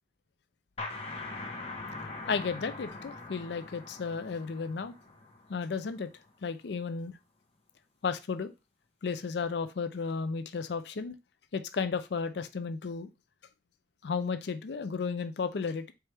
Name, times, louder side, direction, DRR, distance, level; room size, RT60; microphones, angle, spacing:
sound 1, 0.8-6.2, left 3 dB, 30° left, 0.9 m, -42 dB
voice 1, 2.3-4.9 5.5-6.1 6.4-7.1 8.0-8.5 9.0-11.1 11.5-13.1 14.0-15.9, left 5 dB, 65° left, 10 dB, 0.4 m, -33 dB
4.5 x 3.4 x 3.3 m, 0.25 s
head